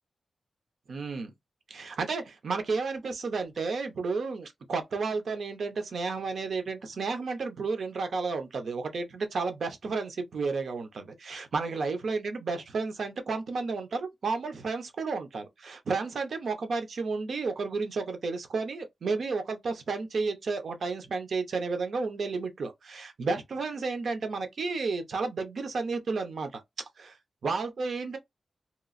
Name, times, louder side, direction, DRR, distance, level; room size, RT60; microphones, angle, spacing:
voice 1, 0.9-1.3 1.7-27.1 27.4-28.2, right 4 dB, 75° right, 0.7 m, -32 dB
2.9 x 2.4 x 2.5 m
wide cardioid pair, 110°, 0 cm